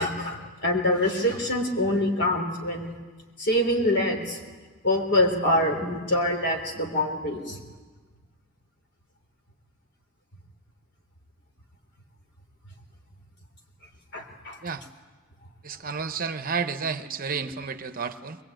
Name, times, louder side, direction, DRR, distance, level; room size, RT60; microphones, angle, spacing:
voice 1, 0.0-2.9 3.4-4.4 4.8-7.6 14.1-14.6, left 1 dB, 55° left, 2 dB, 3.8 m, -25 dB
voice 2, 15.6-18.4, right 5 dB, 40° right, 10 dB, 0.9 m, -31 dB
22.5 x 22.0 x 9.1 m, 1.4 s
head